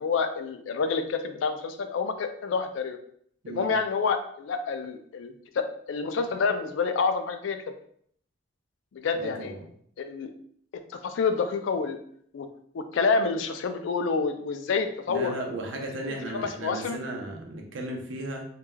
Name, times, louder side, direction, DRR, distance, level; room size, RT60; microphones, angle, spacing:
voice 1, 0.0-3.0 3.5-7.6 8.9-9.5 10.0-10.3 11.0-12.0 12.3-12.5 12.7-15.3 16.0-17.0, left 5 dB, 75° left, 8 dB, 0.3 m, -28 dB
voice 2, 9.2-9.6 15.1-18.5, right 1 dB, 80° right, 1 dB, 0.6 m, -35 dB
3.1 x 2.2 x 2.2 m, 0.64 s
head